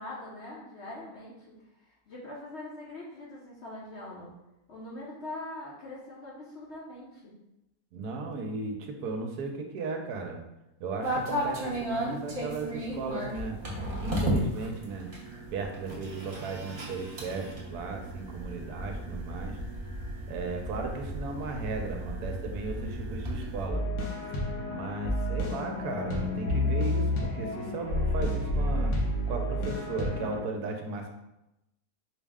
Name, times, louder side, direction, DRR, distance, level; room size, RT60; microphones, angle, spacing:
voice 1, 0.0-1.6 1.9-4.3 4.7-7.3, left 2 dB, 55° left, -5 dB, 0.8 m, -42 dB
voice 2, 7.9-10.4 10.8-13.6 14.0-15.1 15.5-19.6 20.3-23.8 24.7-28.9 29.3-31.1, right 3 dB, 80° right, 3 dB, 1.1 m, -36 dB
sound 1, 11.0-23.7, right 1 dB, 35° right, 0.6 m, -35 dB
sound 2, 23.7-30.4, left 1 dB, 80° left, 1.4 m, -30 dB
4.6 x 2.1 x 3.5 m, 0.91 s
omnidirectional pair, 1.7 m